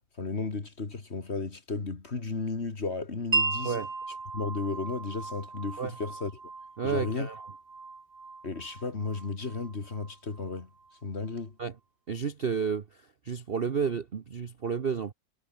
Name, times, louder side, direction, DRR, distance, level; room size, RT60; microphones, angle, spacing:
voice 1, 0.2-3.7 4.3-6.3 6.8-7.3 8.4-10.7 11.0-11.6, left 3 dB, 35° left, 2.3 m, -34 dB
Wind chime, 3.3-11.0, right 4 dB, 25° right, 1.3 m, -36 dB
voice 2, 6.8-7.4 11.6-11.7 12.1-15.1, right 6 dB, 40° right, 0.9 m, -31 dB
omnidirectional pair, 2.0 m